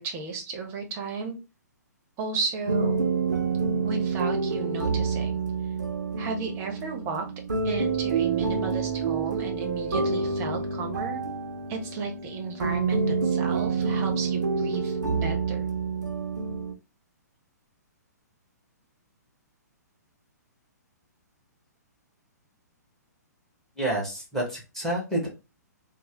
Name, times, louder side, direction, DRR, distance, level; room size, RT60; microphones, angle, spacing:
voice 1, 0.0-1.3 2.2-3.0 3.8-5.4 6.2-7.3 7.6-11.2 11.7-15.7, right 4 dB, 25° right, 3 dB, 0.8 m, -34 dB
sound 1, 2.7-16.7, right 4 dB, 85° right, 0.5 m, -28 dB
voice 2, 23.8-25.3, right 1 dB, 5° left, -2 dB, 1.3 m, -29 dB
3.1 x 2.1 x 3.0 m, 0.29 s
figure-of-eight pair, 120°, 10 cm